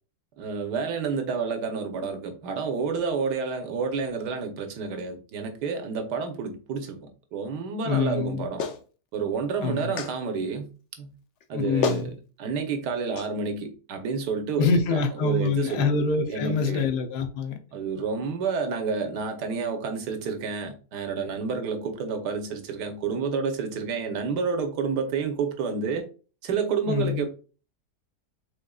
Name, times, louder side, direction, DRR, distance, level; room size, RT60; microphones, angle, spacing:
voice 1, 0.4-8.6 9.1-10.7 11.0-11.1 11.5-15.9 16.3-16.8 17.7-26.1 26.4-27.3, right 5 dB, 75° right, 1.5 m, -29 dB
voice 2, 7.8-8.5 9.6-10.0 11.5-12.1 14.6-17.6 26.9-27.2, left 4 dB, 75° left, 1.4 m, -25 dB
Clapping, 8.6-8.8 10.0-10.1 11.4-11.5 11.8-12.1 13.2-13.3, left 5 dB, 60° left, 0.8 m, -28 dB
5.1 x 3.8 x 2.3 m
omnidirectional pair, 1.8 m